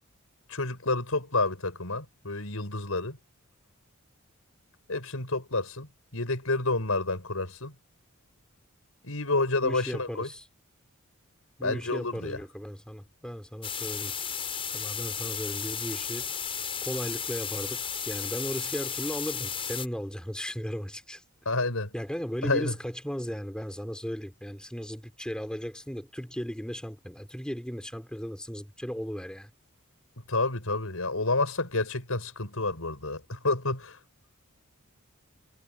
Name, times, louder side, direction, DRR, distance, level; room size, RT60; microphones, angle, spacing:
voice 1, 0.5-3.2 4.9-7.7 9.0-10.3 11.6-12.4 21.5-21.9 22.4-22.7 30.3-34.0, left 3 dB, 75° left, 5.9 m, -29 dB
voice 2, 9.6-10.4 11.6-14.1 14.7-16.3 16.8-21.2 21.9-29.5, equal, 5° left, 4.3 m, -36 dB
sound 1, 13.6-19.9, left 7 dB, 25° left, 5.7 m, -34 dB
head